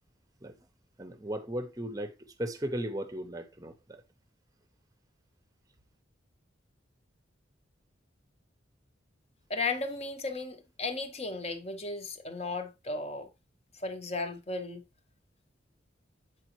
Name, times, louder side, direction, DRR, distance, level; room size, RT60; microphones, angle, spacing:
voice 1, 1.0-4.0, right 1 dB, 20° right, 0.7 m, -36 dB
voice 2, 9.5-13.3 13.7-14.8, left 3 dB, 30° left, 0.8 m, -35 dB
7.4 x 4.9 x 3.0 m
head